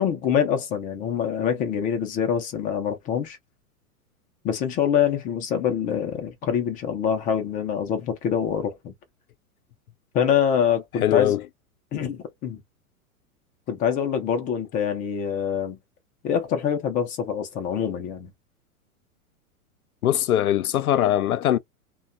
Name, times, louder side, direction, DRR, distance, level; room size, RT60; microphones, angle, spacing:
voice 1, 0.0-3.4 4.4-8.9 10.1-11.4 11.9-12.6 13.7-15.8 16.2-18.3, left 8 dB, 20° left, 0.4 m, -25 dB
voice 2, 11.0-11.4 20.0-21.6, left 12 dB, 75° left, 0.6 m, -21 dB
2.6 x 2.3 x 2.5 m
hypercardioid pair, 105°, 44 cm